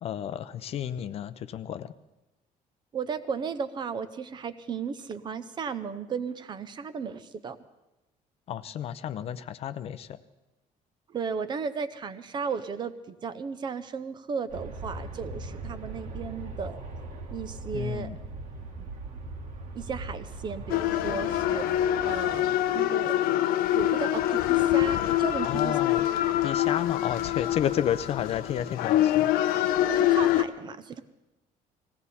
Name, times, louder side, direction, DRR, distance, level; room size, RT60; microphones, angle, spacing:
voice 1, 0.0-1.9 8.5-10.2 17.7-18.2 25.4-26.1 26.4-29.3, left 9 dB, 45° left, 13 dB, 0.5 m, -31 dB
voice 2, 2.9-7.6 11.1-16.8 17.3-18.1 18.8-18.9 19.7-21.7 22.0-23.2 23.7-25.7 29.8-31.0, right 6 dB, 30° right, 12 dB, 0.6 m, -35 dB
Aircraft, 14.5-22.9, right 2 dB, 60° right, 1.7 m, -40 dB
sound 1, 20.7-30.4, left 13 dB, 85° left, 0.7 m, -25 dB
19.5 x 16.0 x 4.2 m, 1.0 s
cardioid pair, 175°, 15 cm